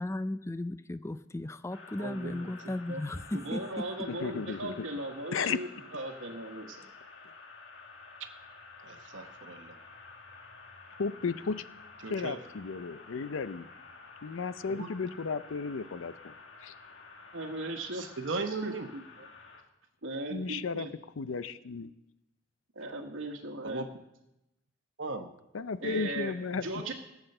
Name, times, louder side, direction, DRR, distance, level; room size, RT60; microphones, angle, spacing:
voice 1, 0.0-3.8, left 1 dB, 15° left, 13 dB, 0.4 m, -36 dB
sound 1, 1.7-19.6, left 4 dB, 65° left, 1.8 m, -51 dB
voice 2, 2.0-2.5 2.9-3.0 8.8-9.8 12.0-12.4 14.8-14.9 17.9-18.9 19.2-19.3 23.6-23.9 25.0-25.3 25.8-26.0, right 3 dB, 70° right, 5 dB, 1.0 m, -37 dB
voice 3, 3.3-5.7 5.9-6.8 17.3-19.0 20.0-20.9 22.7-23.9 25.8-26.3 26.6-26.9, right 2 dB, 85° right, -1 dB, 1.3 m, -38 dB
voice 4, 4.1-4.9 5.3-5.6 11.0-11.6 12.1-13.7 14.2-16.3 16.6-16.7 20.3-20.9 21.2-21.9 25.5-26.7, left 5 dB, 85° left, 14 dB, 0.5 m, -34 dB
17.0 x 8.0 x 6.6 m, 0.92 s
head